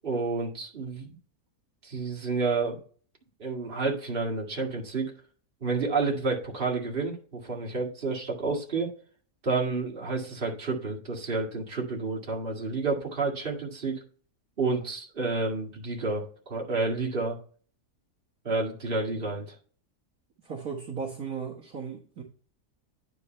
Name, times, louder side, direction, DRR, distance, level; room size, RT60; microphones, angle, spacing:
voice 1, 0.0-1.1 1.8-2.8 3.4-5.1 5.6-8.9 9.4-14.0 14.6-17.4 18.4-19.5, right 3 dB, 35° right, -2 dB, 2.1 m, -30 dB
voice 2, 20.4-22.2, right 5 dB, 60° right, -3 dB, 1.8 m, -36 dB
9.9 x 4.6 x 4.4 m, 0.42 s
omnidirectional pair, 1.8 m